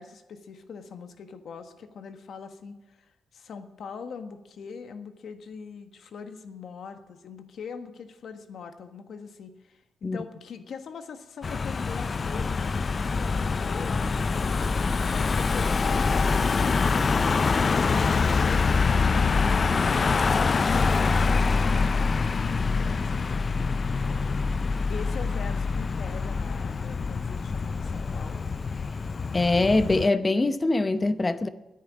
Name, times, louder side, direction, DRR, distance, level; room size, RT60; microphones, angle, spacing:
voice 1, 0.0-12.8 13.1-28.4, left 6 dB, 70° left, 1.3 m, -42 dB
Car passing by / Engine, 11.4-30.1, left 4 dB, 40° left, 0.4 m, -25 dB
voice 2, 29.3-31.5, left 2 dB, 25° left, 0.8 m, -23 dB
10.0 x 9.0 x 9.9 m
cardioid pair, 100°, 0 cm